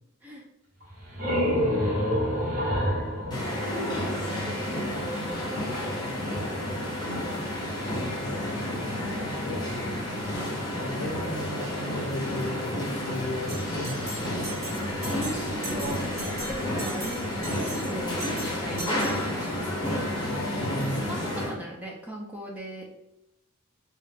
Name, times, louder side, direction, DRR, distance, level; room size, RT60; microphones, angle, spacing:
sound 1, 0.8-4.5, equal, 40° right, 0.9 m, -28 dB
voice 1, 1.4-2.4 3.2-4.0 5.7-6.4 8.0-14.7 20.0-21.1, left 1 dB, 60° left, 1 dB, 0.5 m, -37 dB
sound 2, 3.3-21.5, left 1 dB, 20° left, 0.7 m, -31 dB
Bell, 13.5-19.7, right 2 dB, 70° right, 1.1 m, -41 dB
voice 2, 15.1-16.1 16.5-22.9, right 1 dB, 5° right, -1 dB, 0.3 m, -38 dB
2.3 x 2.1 x 3.2 m, 0.86 s
head